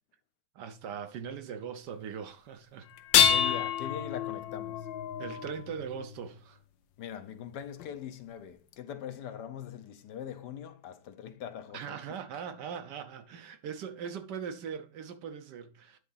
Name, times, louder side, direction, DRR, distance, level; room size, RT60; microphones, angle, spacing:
voice 1, 0.5-2.9 3.5-3.7 5.2-6.6 11.7-16.0, right 7 dB, 70° right, 1.4 m, -40 dB
sound 1, 3.0-6.2 7.8-7.9 8.7-8.8, left 8 dB, 90° left, 1.3 m, -28 dB
voice 2, 3.3-4.9 7.0-11.8, left 9 dB, 70° left, 1.3 m, -41 dB
9.5 x 3.8 x 5.5 m
omnidirectional pair, 1.9 m